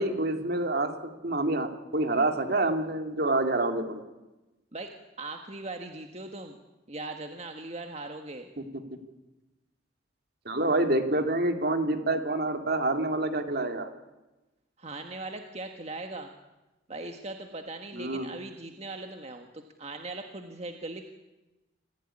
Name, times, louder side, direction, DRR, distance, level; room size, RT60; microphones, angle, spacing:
voice 1, 0.0-4.0 8.6-8.7 10.5-13.9 17.9-18.3, right 2 dB, 55° right, 6 dB, 2.5 m, -27 dB
voice 2, 4.7-6.6 6.9-8.5 14.8-16.3 16.9-21.1, right 2 dB, 35° right, 5 dB, 1.5 m, -39 dB
26.5 x 15.5 x 10.0 m, 1.1 s
head